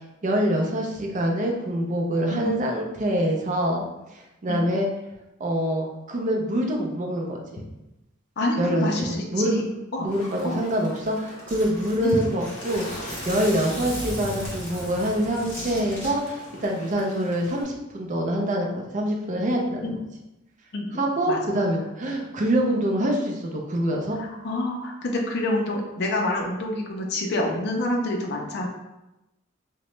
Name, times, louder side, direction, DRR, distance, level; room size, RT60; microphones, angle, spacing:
voice 1, 0.2-4.9 5.4-7.6 8.6-9.6 10.0-19.8 20.9-24.2, equal, 40° right, 0 dB, 0.4 m, -25 dB
voice 2, 8.4-10.1 10.4-10.6 12.0-12.2 19.8-19.9 20.7-21.4 24.2-28.7, left 1 dB, 55° left, 0 dB, 0.4 m, -27 dB
Bird, 10.1-17.6, left 1 dB, 40° left, 0.8 m, -41 dB
Zipper (clothing), 10.7-10.8 11.0-11.1 11.5-16.1, equal, 10° left, 1.2 m, -36 dB
2.9 x 2.1 x 3.0 m, 0.96 s
head